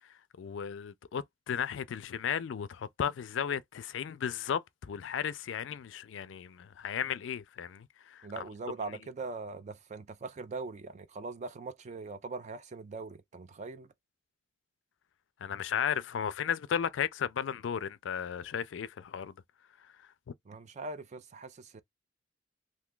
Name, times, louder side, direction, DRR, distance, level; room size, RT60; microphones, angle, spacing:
voice 1, 0.4-8.4 15.4-19.3, left 8 dB, 70° left, 0.4 m, -35 dB
voice 2, 8.2-13.9 20.5-21.8, right 3 dB, 40° right, 0.4 m, -41 dB
2.6 x 2.3 x 3.7 m
head